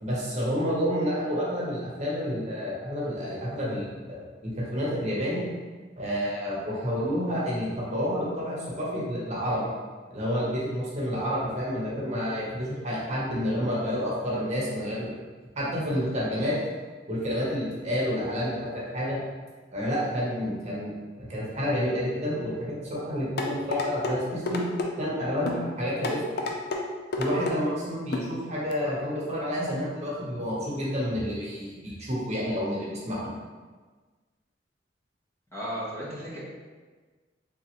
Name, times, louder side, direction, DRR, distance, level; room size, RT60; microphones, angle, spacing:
voice 1, 0.0-5.4 6.0-9.7 10.1-15.1 15.6-16.6 17.1-19.2 19.7-20.9 21.2-24.6 25.0-26.2 27.2-33.2, equal, 40° right, -6 dB, 0.9 m, -29 dB
sound 1, 23.4-24.1 24.5-24.9 25.5-25.6 26.0-26.8 27.1-27.6 28.1-28.3 28.7-28.8, left 2 dB, 60° left, 0.4 m, -29 dB
voice 2, 35.5-36.5, equal, 15° left, -8 dB, 0.9 m, -35 dB
3.6 x 3.0 x 3.0 m, 1.4 s
head